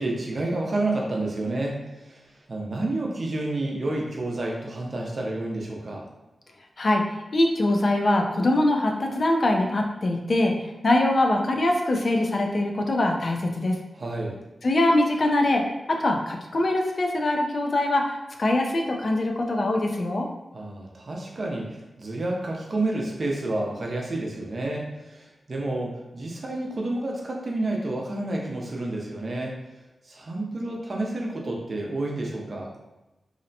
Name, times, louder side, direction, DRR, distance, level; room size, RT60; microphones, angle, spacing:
voice 1, 0.0-2.2 2.5-6.1 14.0-14.4 20.5-29.5 30.0-32.7, right 2 dB, 55° right, -1 dB, 0.5 m, -30 dB
voice 2, 7.3-13.8 14.6-15.6 15.9-20.3, left 1 dB, 55° left, 2 dB, 0.4 m, -23 dB
2.7 x 2.1 x 2.6 m, 1.0 s
cardioid pair, 70°, 0 cm